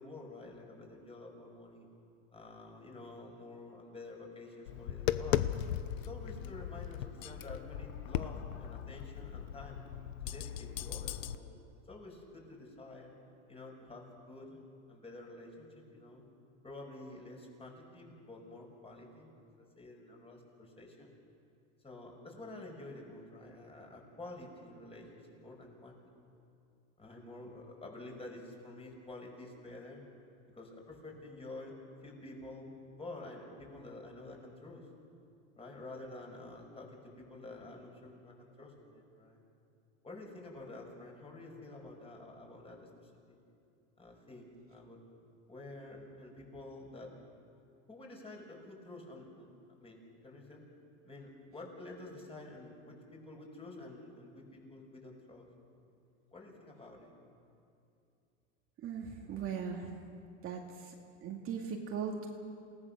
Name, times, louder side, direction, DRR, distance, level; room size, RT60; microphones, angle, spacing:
voice 1, 0.0-1.9 2.3-5.4 6.1-9.8 10.2-13.1 13.5-14.6 14.9-16.2 16.6-21.1 21.8-26.0 27.0-30.1 30.5-31.7 32.0-34.8 35.6-39.4 40.0-43.4 44.0-45.0 45.5-47.1 47.9-49.5 49.8-50.6 51.0-55.5 56.3-57.1, left 2 dB, 15° left, 0 dB, 5.8 m, -49 dB
Tap, 4.7-11.4, left 11 dB, 85° left, 1.1 m, -37 dB
voice 2, 58.8-60.0 60.4-60.9 61.2-62.3, right 6 dB, 35° right, 1 dB, 2.4 m, -39 dB
28.5 x 18.5 x 6.7 m, 2.5 s
supercardioid pair, 125°, 38 cm